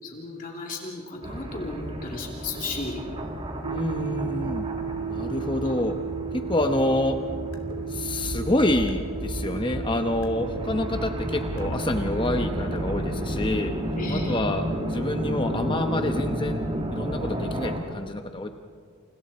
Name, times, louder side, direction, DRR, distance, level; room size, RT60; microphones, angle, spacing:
voice 1, 0.0-3.1 6.3-6.4 14.0-14.4, left 2 dB, 40° left, -1 dB, 2.9 m, -35 dB
sound 1, 1.2-17.8, equal, 25° right, 2.1 m, -32 dB
sound 2, 3.6-16.8, right 7 dB, 55° right, 0.6 m, -36 dB
voice 2, 3.7-4.7 5.1-5.9 6.3-7.2 7.9-13.7 14.1-14.6 14.9-16.6 16.9-18.5, left 1 dB, 20° left, 5 dB, 0.9 m, -27 dB
sound 3, 7.3-10.5 10.9-13.6, left 1 dB, 80° left, 2.6 m, -38 dB
29.5 x 29.5 x 4.3 m, 2.1 s
head